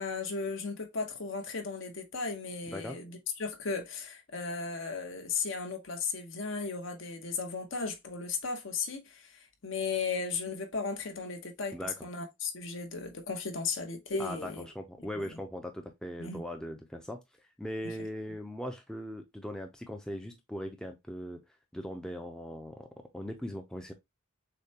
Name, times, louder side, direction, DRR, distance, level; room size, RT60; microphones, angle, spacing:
voice 1, 0.0-9.3 9.6-11.8 12.0-14.7 15.2-15.3 16.2-16.4, left 4 dB, 70° left, 1.0 m, -35 dB
voice 2, 2.7-3.0 11.7-12.1 14.2-17.2 17.6-21.4 21.7-23.9, equal, 5° left, 0.4 m, -40 dB
6.6 x 2.2 x 2.8 m
head